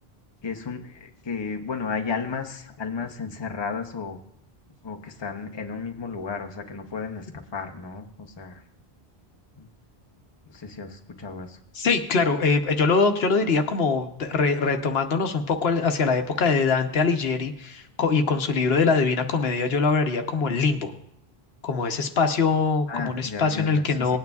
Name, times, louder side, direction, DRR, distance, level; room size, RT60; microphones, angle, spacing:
voice 1, 0.4-4.2 4.8-7.3 7.5-8.6 9.6-9.7 10.5-11.6 22.9-24.2, left 5 dB, 30° left, 4 dB, 0.8 m, -33 dB
voice 2, 11.7-20.9 21.6-24.2, left 4 dB, 75° left, 6 dB, 1.1 m, -23 dB
19.5 x 9.3 x 2.3 m, 0.72 s
omnidirectional pair, 1.1 m